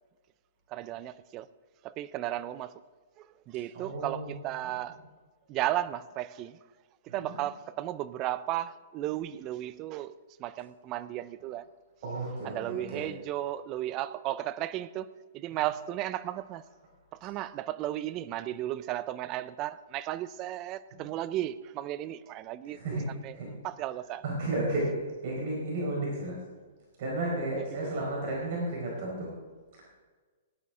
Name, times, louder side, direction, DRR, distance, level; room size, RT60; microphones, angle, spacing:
voice 1, 0.7-1.5 1.8-2.7 3.2-5.0 5.5-6.6 7.0-10.1 10.4-11.7 12.4-16.6 17.1-22.8 23.2-23.4 23.6-24.2 27.5-28.0, right 13 dB, 30° right, 0.5 m, -35 dB
voice 2, 3.7-4.3 7.1-7.4 12.0-13.1 22.7-23.0 23.3-23.5 24.2-26.4 27.0-29.3, right 2 dB, 50° right, 4.6 m, -33 dB
18.0 x 11.0 x 3.7 m
hypercardioid pair, 155°, 0 cm